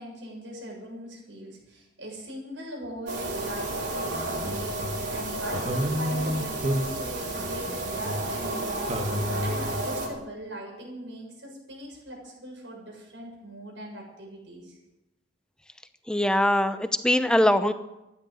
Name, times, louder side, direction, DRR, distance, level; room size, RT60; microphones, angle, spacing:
voice 1, 0.0-14.8, equal, 85° right, -1 dB, 7.4 m, -40 dB
sound 1, 3.0-10.1, right 2 dB, 65° right, 4.6 m, -32 dB
sound 2, 3.7-5.1 5.5-8.6 8.9-9.8, equal, 35° right, 1.7 m, -31 dB
voice 2, 16.1-17.7, left 1 dB, 5° left, 10 dB, 0.8 m, -22 dB
15.0 x 11.0 x 8.2 m, 0.96 s
head